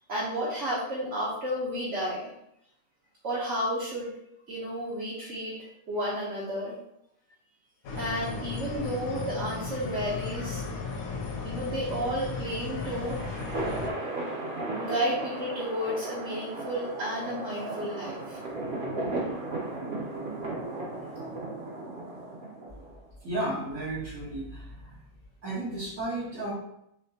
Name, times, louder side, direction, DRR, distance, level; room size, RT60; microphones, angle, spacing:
voice 1, 0.1-2.3 3.2-4.1 4.5-5.6 5.9-6.7 7.9-10.6 11.4-13.2 13.4-13.6 14.4-18.4, equal, 60° right, -7 dB, 1.2 m, -32 dB
sound 1, 7.8-13.9, left 4 dB, 80° left, 1.1 m, -35 dB
sound 2, 12.5-23.0, right 2 dB, 45° right, 0.9 m, -35 dB
voice 2, 23.2-24.6 25.4-26.5, right 1 dB, 75° right, -11 dB, 1.7 m, -33 dB
4.4 x 2.8 x 2.8 m, 0.78 s
omnidirectional pair, 1.4 m